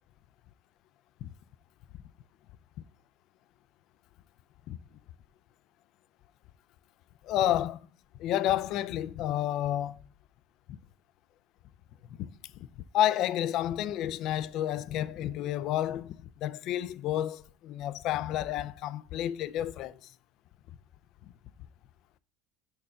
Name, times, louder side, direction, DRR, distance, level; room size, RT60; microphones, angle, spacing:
voice 1, 7.2-7.8 8.2-10.0 12.2-12.3 12.9-20.0, left 12 dB, 55° left, 0.4 m, -30 dB
5.6 x 4.4 x 6.3 m
supercardioid pair, 100°, 0 cm